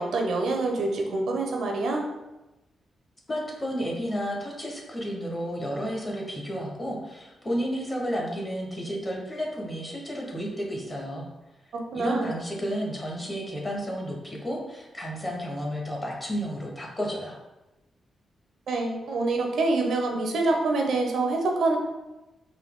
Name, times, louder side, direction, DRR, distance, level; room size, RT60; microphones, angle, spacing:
voice 1, 0.0-2.1 11.9-12.3 18.7-21.8, right 3 dB, 65° right, 2 dB, 0.6 m, -26 dB
voice 2, 3.3-11.3 11.9-17.4, equal, 15° left, -1 dB, 0.7 m, -32 dB
4.0 x 2.6 x 3.5 m, 1.0 s
wide cardioid pair, 160°, 0 cm